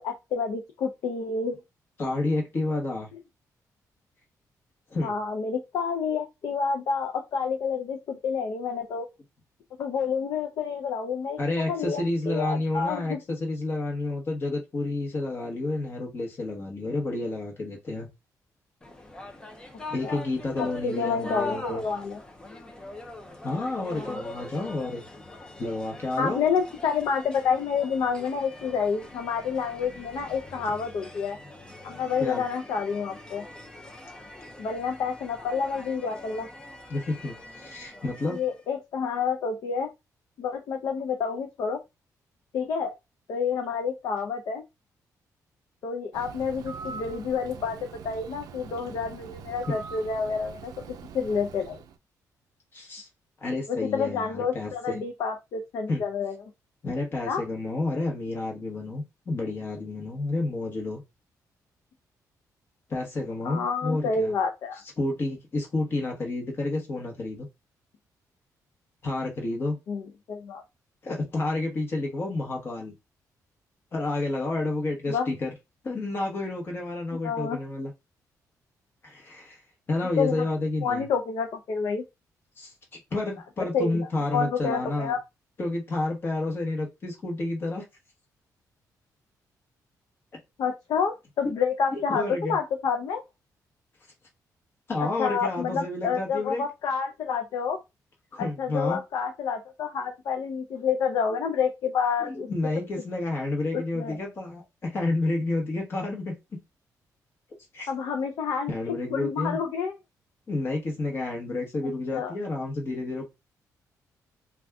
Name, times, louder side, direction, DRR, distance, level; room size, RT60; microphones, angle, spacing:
voice 1, 0.0-1.6 5.0-9.1 9.8-11.4 11.7-13.2 20.0-20.2 20.6-22.2 23.9-24.2 26.2-31.4 31.8-33.4 34.6-36.5 38.2-39.9 40.4-41.8 42.5-42.9 43.3-44.6 45.8-51.8 53.7-56.4 57.2-57.4 63.4-64.8 69.9-70.0 70.3-70.6 75.1-75.3 77.2-77.6 80.2-80.4 80.8-82.0 83.6-84.1 84.3-85.2 90.6-93.2 95.0-97.8 98.4-102.5 103.7-104.2 107.9-109.9 111.8-112.3, left 6 dB, 70° left, 0.5 m, -29 dB
voice 2, 2.0-3.1 4.9-5.1 11.4-18.1 19.9-21.8 23.4-25.0 25.6-26.4 32.2-32.5 36.9-38.4 49.7-49.8 52.7-53.1 53.4-55.0 55.9-56.0 56.8-61.0 62.9-64.3 65.0-67.5 69.0-69.8 71.0-72.9 73.9-75.5 75.8-77.9 79.0-79.6 79.9-81.1 82.6-82.7 83.1-85.1 85.6-87.8 91.9-92.6 94.9-96.6 98.3-99.0 102.2-106.3 107.7-107.9 108.7-109.6 110.5-113.3, left 2 dB, 35° left, 1.0 m, -30 dB
sound 1, 18.8-38.6, left 2 dB, 15° left, 0.5 m, -43 dB
Bird, 46.1-52.0, right 6 dB, 70° right, 0.4 m, -43 dB
2.5 x 2.3 x 3.4 m
wide cardioid pair, 165°, 7 cm